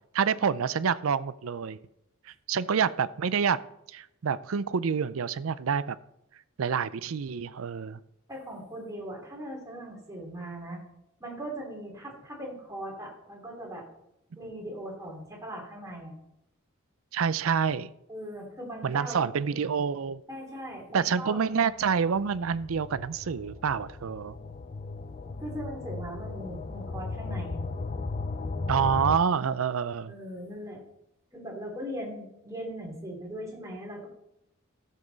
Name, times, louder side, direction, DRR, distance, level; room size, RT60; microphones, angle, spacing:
voice 1, 0.1-1.8 2.5-3.6 3.9-6.0 6.6-8.0 17.1-17.9 18.8-20.2 20.9-24.3 28.7-30.1, right 6 dB, 80° right, 16 dB, 0.5 m, -27 dB
voice 2, 8.3-10.8 11.2-13.8 14.4-16.2 18.1-19.3 20.3-21.4 25.4-27.6 30.1-30.8 31.3-34.1, right 1 dB, 15° right, -1 dB, 2.8 m, -39 dB
sound 1, 21.8-29.2, left 3 dB, 35° left, 0.4 m, -36 dB
14.0 x 7.5 x 4.0 m, 0.82 s
head